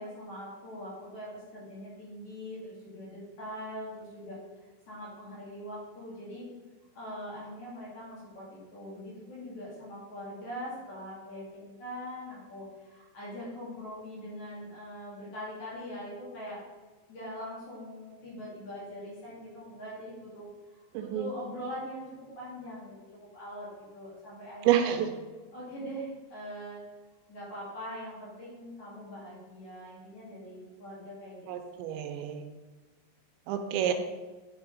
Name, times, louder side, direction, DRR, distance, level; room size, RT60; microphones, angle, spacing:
voice 1, 0.0-6.5 6.9-16.6 17.1-20.5 21.0-22.9 23.3-25.0 25.5-26.8 27.3-31.4 31.7-31.8, equal, 45° left, -7 dB, 3.1 m, -42 dB
voice 2, 20.9-21.3 24.6-25.1 31.5-32.4 33.5-33.9, right 10 dB, 85° right, 6 dB, 2.9 m, -28 dB
8.9 x 6.4 x 3.9 m, 1.2 s
omnidirectional pair, 5.2 m